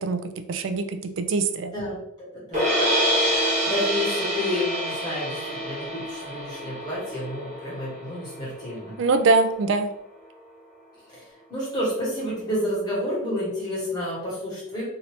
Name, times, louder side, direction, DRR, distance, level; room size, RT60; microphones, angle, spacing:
voice 1, 0.0-1.7 9.0-9.9, right 3 dB, 60° right, 9 dB, 0.3 m, -23 dB
voice 2, 1.7-2.7 3.6-8.9 11.1-11.2 11.5-14.8, left 1 dB, 20° left, -8 dB, 1.4 m, -30 dB
sound 1, 2.5-8.7, equal, 35° right, 1.1 m, -26 dB
2.7 x 2.6 x 3.2 m, 0.83 s
head